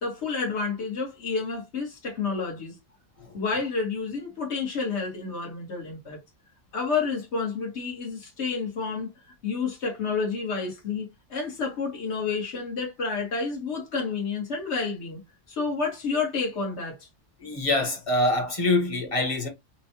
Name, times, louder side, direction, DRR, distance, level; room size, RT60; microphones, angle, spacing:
voice 1, 0.0-2.7 3.3-6.2 6.7-15.2 15.5-17.1, left 4 dB, 65° left, 1.9 m, -30 dB
voice 2, 17.4-19.5, left 2 dB, 30° left, 1.2 m, -25 dB
5.9 x 2.3 x 2.9 m
omnidirectional pair, 1.3 m